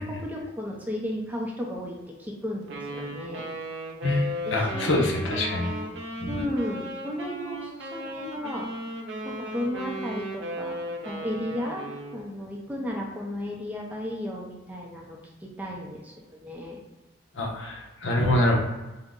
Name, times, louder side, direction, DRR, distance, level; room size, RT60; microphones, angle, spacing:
voice 1, 0.0-3.4 4.5-5.9 6.3-8.7 9.2-10.7 11.0-11.9 12.1-16.8, left 1 dB, 10° right, -2 dB, 0.5 m, -34 dB
Wind instrument woodwind instrument, 2.7-12.3, right 1 dB, 75° right, 0.6 m, -36 dB
voice 2, 4.0-5.7 6.2-6.4 17.3-18.6, left 1 dB, 85° left, -1 dB, 0.8 m, -25 dB
3.6 x 2.1 x 3.6 m, 1.1 s
head